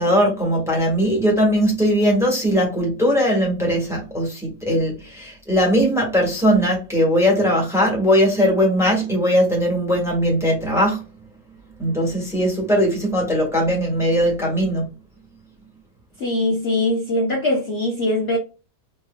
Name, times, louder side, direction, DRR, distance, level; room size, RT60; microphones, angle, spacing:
voice 1, 0.0-11.0 11.8-14.8, equal, ahead, 1.3 m, -19 dB
voice 2, 16.2-18.4, left 1 dB, 50° left, 0.8 m, -21 dB
4.4 x 2.9 x 2.3 m
omnidirectional pair, 2.0 m